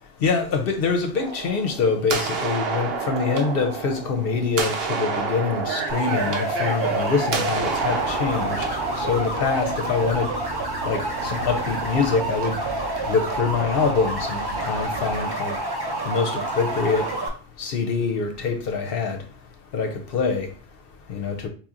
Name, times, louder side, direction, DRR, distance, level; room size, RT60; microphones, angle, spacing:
voice 1, 0.2-8.7 9.0-10.3 10.8-12.5 13.1-15.5 16.1-17.1 17.6-19.2 19.7-20.5 21.1-21.5, left 5 dB, 60° left, 0.7 m, -25 dB
sound 1, 1.1-9.0, right 5 dB, 60° right, 0.9 m, -29 dB
sound 2, 5.9-17.3, right 2 dB, 30° right, 0.5 m, -28 dB
sound 3, 7.5-15.2, right 2 dB, 90° right, 1.1 m, -38 dB
4.4 x 2.8 x 2.4 m
omnidirectional pair, 1.2 m